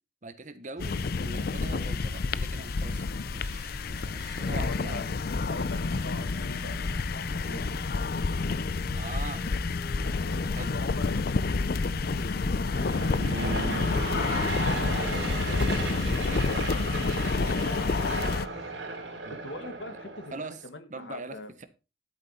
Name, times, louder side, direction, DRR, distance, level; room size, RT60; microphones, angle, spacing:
voice 1, 0.2-3.0 3.3-5.1 7.4-7.6 8.9-9.5 10.5-10.8 13.6-13.9 16.3-16.8 17.4-17.9 19.2-19.4 20.3-20.6 20.9-21.7, right 3 dB, 40° right, 12 dB, 1.1 m, -42 dB
sound 1, 0.8-18.5, left 4 dB, 55° left, 0.5 m, -29 dB
sound 2, 0.8-18.7, left 1 dB, 20° left, 1.6 m, -44 dB
voice 2, 4.5-5.1 5.4-6.8 7.1-7.7 10.2-15.6 17.4-18.5 19.3-21.5, left 2 dB, 75° left, 9 dB, 1.8 m, -43 dB
Aircraft / Engine, 12.6-20.5, right 3 dB, 85° right, 4.0 m, -35 dB
12.0 x 8.0 x 4.3 m, 0.31 s
head